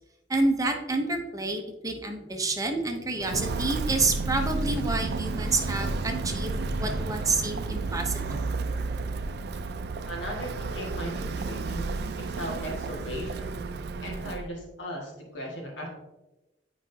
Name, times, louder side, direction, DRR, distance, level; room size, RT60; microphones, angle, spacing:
voice 1, 0.3-6.5 6.8-8.4, right 3 dB, 20° right, 4 dB, 0.7 m, -28 dB
Walk footsteps, 3.2-14.5, right 3 dB, 60° right, 0.4 m, -32 dB
sound 1, 5.6-9.2, equal, 5° left, 1.8 m, -42 dB
voice 2, 10.1-13.6 14.0-15.9, equal, 85° left, -1 dB, 1.8 m, -37 dB
8.8 x 4.9 x 2.7 m, 1.0 s
head